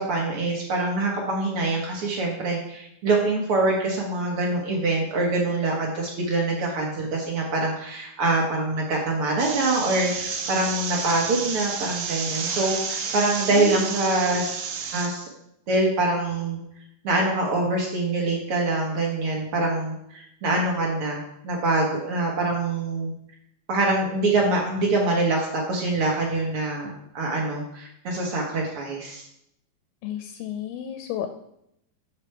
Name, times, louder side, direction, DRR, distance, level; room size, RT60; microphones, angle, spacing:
voice 1, 0.0-14.5 14.9-15.2 15.7-16.6 17.0-23.1 23.7-29.2, right 2 dB, 60° right, -1 dB, 1.4 m, -25 dB
sound 1, 9.4-15.1, right 5 dB, 85° right, 1.4 m, -31 dB
voice 2, 13.5-14.4 30.0-31.3, left 10 dB, 80° left, 7 dB, 2.2 m, -33 dB
9.7 x 4.1 x 4.5 m, 0.77 s
omnidirectional pair, 4.1 m